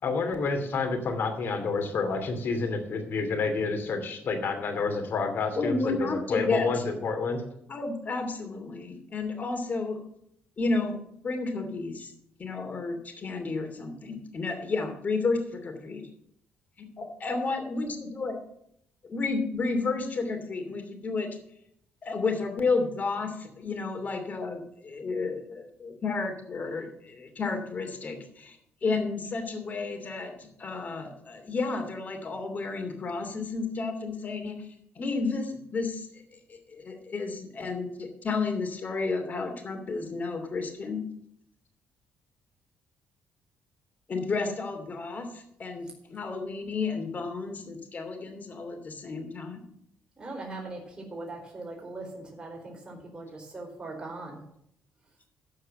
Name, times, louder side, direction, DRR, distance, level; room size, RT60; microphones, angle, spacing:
voice 1, 0.0-7.4, left 4 dB, 60° left, 6 dB, 2.6 m, -29 dB
voice 2, 5.5-6.9 7.7-10.0 10.6-10.9 11.2-12.1 12.4-16.0 17.2-18.4 19.0-21.3 22.0-34.7 35.0-36.2 36.5-41.0 44.1-49.6, left 3 dB, 40° left, 5 dB, 2.7 m, -31 dB
voice 3, 50.2-54.4, right 2 dB, 20° right, -2 dB, 4.4 m, -40 dB
14.0 x 4.7 x 7.6 m, 0.72 s
cardioid pair, 95°, 4 cm